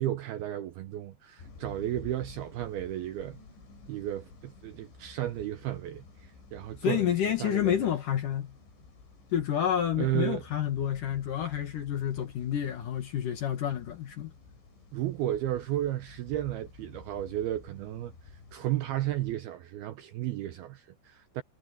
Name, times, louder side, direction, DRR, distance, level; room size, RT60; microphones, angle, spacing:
voice 1, 0.0-3.4 3.9-7.1 7.4-7.9 10.0-10.4 14.9-21.4, right 13 dB, 75° right, 2.3 m, -33 dB
sound 1, 1.4-19.4, left 4 dB, 75° left, 8.9 m, -52 dB
voice 2, 6.8-8.6 9.3-14.3, left 10 dB, 60° left, 2.5 m, -29 dB
omnidirectional pair, 5.4 m